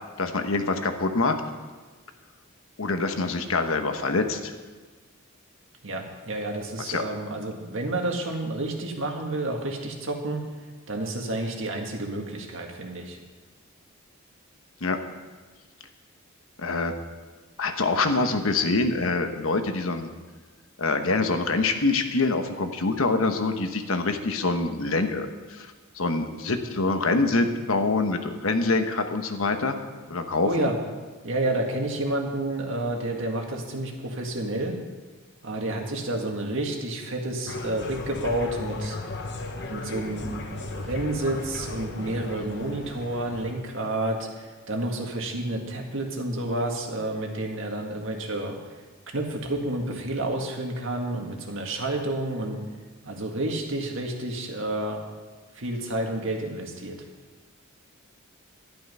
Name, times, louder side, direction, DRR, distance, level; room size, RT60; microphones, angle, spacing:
voice 1, 0.2-1.4 2.8-4.5 6.8-7.0 14.8-15.0 16.6-16.9 17.6-20.1 20.8-25.7 25.9-29.8 30.1-30.5, left 3 dB, 75° left, 6 dB, 1.1 m, -25 dB
voice 2, 5.8-10.4 10.9-13.2 30.4-30.8 31.2-34.8 35.4-39.0 39.7-48.6 49.1-52.6 53.0-55.0 55.5-57.0, right 1 dB, 65° right, 2 dB, 1.9 m, -30 dB
sound 1, 37.5-43.5, left 2 dB, 55° left, 1.2 m, -36 dB
11.5 x 11.5 x 5.5 m, 1.3 s
head